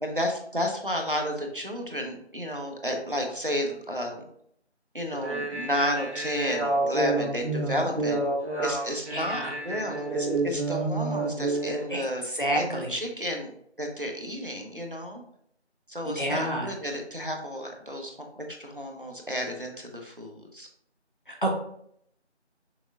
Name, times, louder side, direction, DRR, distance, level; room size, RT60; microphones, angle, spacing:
voice 1, 0.0-4.2 4.9-8.2 8.6-12.2 12.5-13.5 13.8-15.2 15.9-20.7, equal, 50° right, 2 dB, 0.8 m, -32 dB
sound 1, 5.1-11.8, right 2 dB, 70° right, 1.4 m, -29 dB
voice 2, 9.1-9.5 11.9-12.9 16.1-16.7 21.3-21.5, right 1 dB, 50° left, 0 dB, 1.1 m, -29 dB
6.0 x 3.5 x 2.5 m, 0.68 s
figure-of-eight pair, 180°, 34 cm